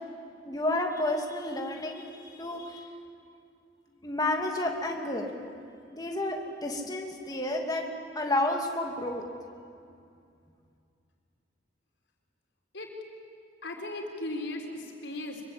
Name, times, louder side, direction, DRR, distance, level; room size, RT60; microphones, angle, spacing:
voice 1, 0.4-2.9 4.0-5.3 5.9-7.8 8.1-9.2, left 1 dB, 20° left, 1 dB, 2.6 m, -31 dB
voice 2, 13.6-15.4, left 1 dB, 85° left, 2 dB, 4.3 m, -37 dB
25.0 x 22.5 x 9.0 m, 2.4 s
head